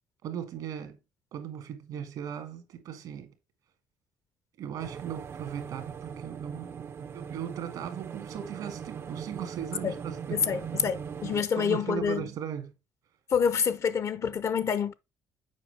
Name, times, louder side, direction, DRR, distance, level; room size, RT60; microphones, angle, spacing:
voice 1, 0.2-1.0 1.3-3.3 4.6-6.8 7.1-10.6 11.6-12.7, right 9 dB, 75° right, 1.7 m, -38 dB
sound 1, 4.8-11.4, right 7 dB, 40° right, 0.4 m, -40 dB
voice 2, 10.3-12.3 13.3-14.9, left 7 dB, 50° left, 0.5 m, -27 dB
7.5 x 4.8 x 3.3 m
cardioid pair, 85°, 6 cm